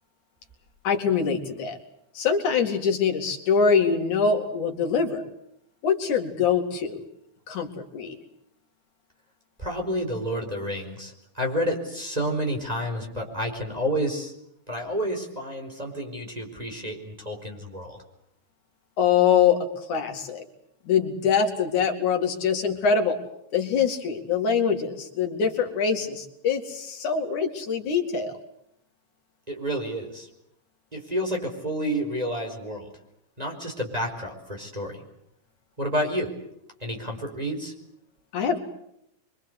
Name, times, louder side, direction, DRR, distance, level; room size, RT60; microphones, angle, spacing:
voice 1, 0.8-1.8 2.2-5.2 5.8-7.1 7.5-8.2 19.0-20.4 20.9-23.2 23.5-28.4 38.3-38.6, left 6 dB, 75° left, 3 dB, 3.9 m, -24 dB
voice 2, 9.6-14.3 14.7-18.0 29.5-30.3 30.9-32.9 33.4-35.0 35.8-36.3 36.8-37.7, equal, 10° right, 0 dB, 4.8 m, -30 dB
25.5 x 24.5 x 8.2 m, 0.75 s
omnidirectional pair, 3.5 m